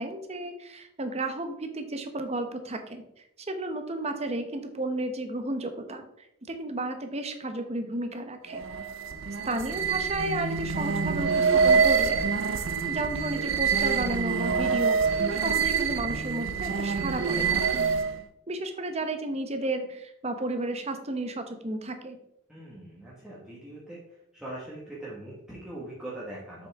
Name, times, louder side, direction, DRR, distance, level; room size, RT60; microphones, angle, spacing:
voice 1, 0.0-3.0 3.5-6.1 6.5-8.6 9.4-12.2 12.9-17.9 18.5-22.2, right 2 dB, 30° right, 7 dB, 0.9 m, -33 dB
sound 1, 8.5-18.2, right 5 dB, 80° right, 0.7 m, -26 dB
voice 2, 22.5-26.7, right 1 dB, 5° right, -8 dB, 1.6 m, -41 dB
7.4 x 6.7 x 3.6 m, 0.78 s
head